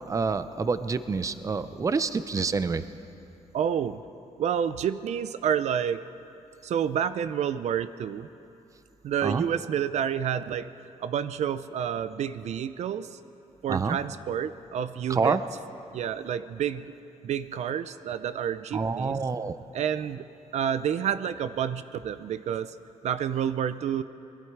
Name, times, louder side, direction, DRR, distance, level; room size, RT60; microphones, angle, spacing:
voice 1, 0.0-2.8 9.2-9.5 13.7-14.0 15.1-15.4 18.7-19.6, right 4 dB, 25° right, 12 dB, 0.7 m, -27 dB
voice 2, 3.5-4.0 4.4-6.0 6.6-8.3 9.0-10.7 11.0-13.2 13.6-15.4 15.9-16.9 17.2-19.2 19.7-20.3 20.5-22.7 23.0-24.0, right 8 dB, 70° right, 13 dB, 0.6 m, -29 dB
27.0 x 21.0 x 4.7 m, 2.8 s
cardioid pair, 140°, 12 cm